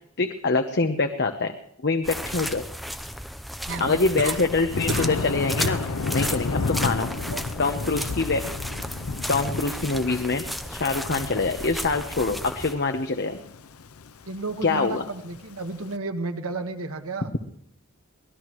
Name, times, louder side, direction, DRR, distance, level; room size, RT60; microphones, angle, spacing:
voice 1, 0.2-1.5 1.8-2.6 3.8-5.8 6.1-7.1 7.6-8.4 9.3-10.4 10.7-13.4 14.6-15.0, left 3 dB, 50° left, 5 dB, 0.9 m, -25 dB
sound 1, 2.0-12.7, equal, ahead, 0.6 m, -34 dB
sound 2, 3.7-4.4 4.9-5.2 5.6-5.9 6.3-6.7 8.5-8.6, right 4 dB, 50° right, 0.8 m, -33 dB
voice 2, 3.7-4.0 7.3-8.2 11.1-11.3 14.3-17.3, right 2 dB, 70° right, 7 dB, 1.5 m, -33 dB
Thunder, 4.7-15.8, left 4 dB, 75° left, 0.7 m, -32 dB
23.5 x 18.0 x 3.1 m, 0.72 s
head